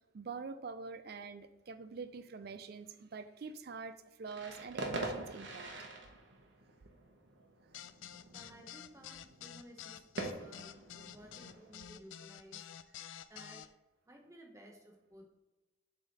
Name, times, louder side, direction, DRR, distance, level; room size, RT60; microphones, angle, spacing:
voice 1, 0.1-5.7, right 4 dB, 55° right, 11 dB, 0.4 m, -45 dB
sound 1, 4.2-11.8, right 2 dB, 75° right, 1.0 m, -45 dB
sound 2, 7.7-13.7, left 10 dB, 85° left, 0.3 m, -49 dB
voice 2, 8.3-12.7 13.3-13.6 14.1-15.3, right 1 dB, 15° right, 1 dB, 0.9 m, -56 dB
7.2 x 3.5 x 4.1 m, 1.1 s
head